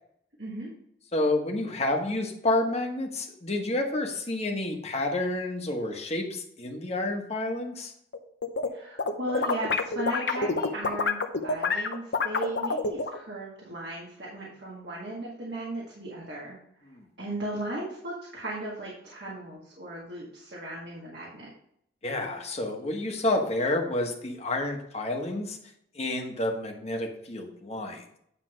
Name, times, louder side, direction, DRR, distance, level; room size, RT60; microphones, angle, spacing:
voice 1, 0.4-0.7 8.7-16.6 17.2-21.5, right 1 dB, 65° right, -4 dB, 2.0 m, -36 dB
voice 2, 1.1-7.9 16.9-17.0 22.0-25.6 25.9-28.2, left 2 dB, 35° left, 2 dB, 1.3 m, -29 dB
sound 1, 8.1-8.7 9.0-13.2, left 4 dB, 70° left, 0.8 m, -27 dB
9.9 x 3.4 x 6.3 m, 0.70 s
head